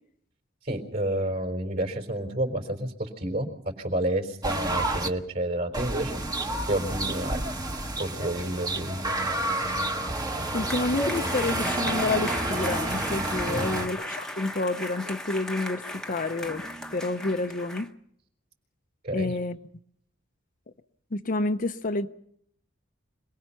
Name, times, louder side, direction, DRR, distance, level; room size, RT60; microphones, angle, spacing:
voice 1, 0.6-3.5 3.8-6.3 6.7-7.4 8.0-9.1 13.5-13.8 19.0-19.3, right 1 dB, 50° right, 4.2 m, -30 dB
sound 1, 4.4-5.1 5.7-13.9, right 2 dB, 20° right, 1.3 m, -29 dB
sound 2, 10.0-17.9, left 1 dB, 5° left, 1.1 m, -36 dB
voice 2, 10.5-16.6 16.9-17.9 19.1-19.6 21.1-22.1, left 2 dB, 45° left, 0.8 m, -29 dB
26.5 x 19.5 x 5.8 m
head